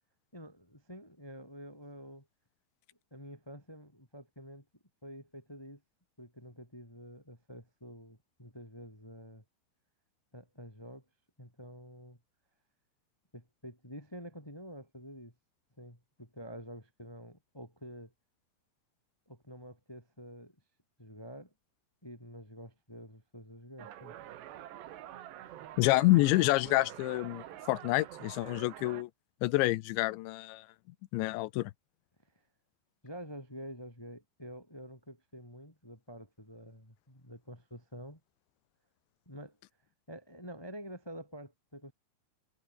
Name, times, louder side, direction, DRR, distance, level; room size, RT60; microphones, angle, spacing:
voice 1, 0.3-2.3 3.1-4.6 5.0-5.8 6.2-9.4 10.3-11.0 11.4-12.2 13.3-15.3 15.8-18.1 19.3-20.6 21.0-21.5 22.0-24.2 33.0-38.2 39.3-39.6 40.1-41.9, equal, 5° left, 3.7 m, -48 dB
sound 1, 23.8-29.0, right 12 dB, 70° right, 3.8 m, -47 dB
voice 2, 25.8-29.1 29.4-30.6 31.1-31.7, left 19 dB, 80° left, 3.0 m, -28 dB
omnidirectional pair, 5.4 m